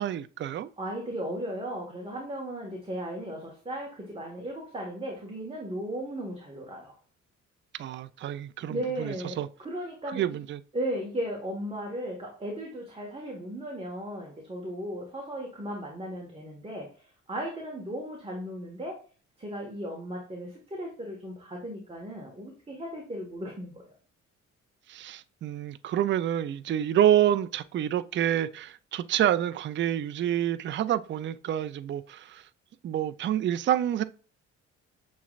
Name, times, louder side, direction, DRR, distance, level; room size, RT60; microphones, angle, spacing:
voice 1, 0.0-0.7 7.8-9.5 10.1-10.6 24.9-32.4 32.8-34.0, right 11 dB, 40° right, 0.4 m, -28 dB
voice 2, 0.8-6.9 8.7-10.5 10.7-19.0 19.4-24.0, right 1 dB, 20° right, 1.4 m, -36 dB
6.9 x 3.2 x 2.4 m
cardioid pair, 90°, 30 cm